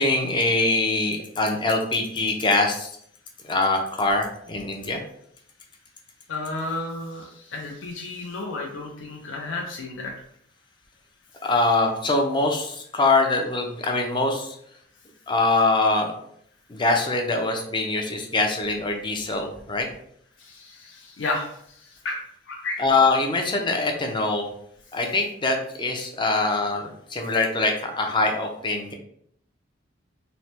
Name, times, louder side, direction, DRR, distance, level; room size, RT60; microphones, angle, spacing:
voice 1, 0.0-2.9 3.4-5.0 11.4-14.6 15.3-16.1 16.7-19.9 22.8-24.5 24.9-28.9, left 2 dB, 25° left, 3 dB, 0.4 m, -23 dB
voice 2, 6.3-10.1 20.4-21.6 22.0-22.8, left 2 dB, 75° left, 0 dB, 0.5 m, -32 dB
3.1 x 2.1 x 2.8 m, 0.68 s
head